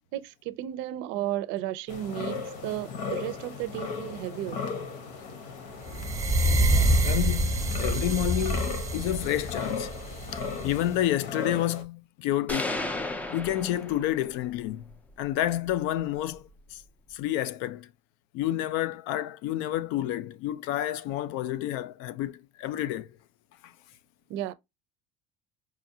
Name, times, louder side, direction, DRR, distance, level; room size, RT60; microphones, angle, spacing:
voice 1, 0.1-4.6 24.3-24.5, right 13 dB, 65° right, 0.5 m, -33 dB
sound 1, 1.9-11.8, left 5 dB, 85° left, 1.0 m, -37 dB
sound 2, 5.9-10.9, right 1 dB, 15° right, 0.7 m, -26 dB
voice 2, 7.0-12.9 13.3-14.9 15.2-16.8 17.1-17.9 18.3-23.1 23.6-23.7, left 13 dB, 70° left, 0.5 m, -30 dB
sound 3, 12.5-14.4, left 2 dB, 5° left, 0.4 m, -33 dB
4.9 x 2.3 x 2.7 m
cardioid pair, 150°, 21 cm